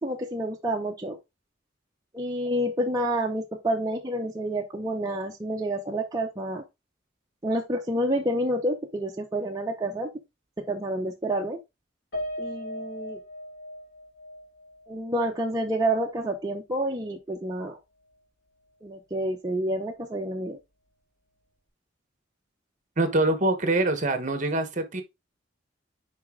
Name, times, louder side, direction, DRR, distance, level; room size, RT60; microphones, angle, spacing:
voice 1, 0.0-1.2 2.1-6.6 7.4-10.1 10.7-11.6 12.4-13.2 14.9-17.8 18.8-20.6, right 1 dB, 20° right, 0.8 m, -29 dB
Piano, 12.1-16.6 17.0-17.1 17.5-17.7, equal, 60° left, 2.8 m, -39 dB
voice 2, 23.0-25.0, right 2 dB, 40° right, 1.1 m, -24 dB
6.5 x 4.9 x 3.7 m
head